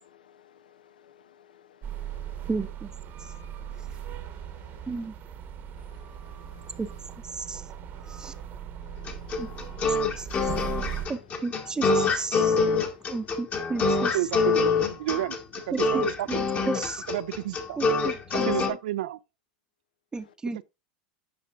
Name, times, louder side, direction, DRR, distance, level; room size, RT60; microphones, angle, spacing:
voice 1, 0.1-0.6 0.8-1.6 1.9-2.4 3.9-4.8 5.9-6.8 8.3-8.4 8.8-9.3 10.2-10.3 11.0-11.1, left 9 dB, 80° left, 0.5 m, -57 dB
sound 1, 1.8-11.1, right 9 dB, 45° right, 1.0 m, -38 dB
voice 2, 2.5-2.9 4.9-5.1 6.8-6.9 7.3-7.6 8.1-8.3 9.4-9.5 10.2-10.3 11.1-12.6 13.1-14.2 15.7-17.0 17.8-18.8 20.1-20.6, right 4 dB, 15° right, 0.7 m, -33 dB
sound 2, 9.1-18.7, left 4 dB, 35° left, 1.5 m, -25 dB
voice 3, 14.1-15.4 15.9-16.3 17.1-17.8 18.4-19.2, right 14 dB, 70° right, 0.3 m, -30 dB
9.5 x 5.8 x 2.4 m
hypercardioid pair, 85°, 5 cm